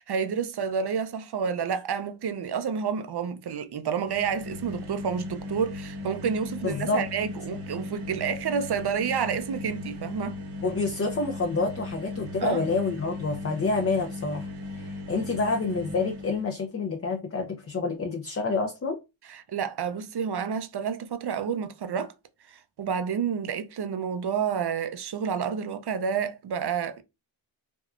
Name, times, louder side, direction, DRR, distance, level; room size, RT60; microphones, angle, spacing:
voice 1, 0.0-10.4 12.4-12.6 19.3-22.1 22.5-27.0, right 7 dB, 55° right, 0.5 m, -29 dB
sound 1, 3.9-16.5, left 2 dB, 85° right, 1.0 m, -37 dB
voice 2, 6.6-7.0 10.6-19.0, left 3 dB, 30° left, 0.5 m, -28 dB
3.4 x 2.2 x 2.4 m
cardioid pair, 45°, 50 cm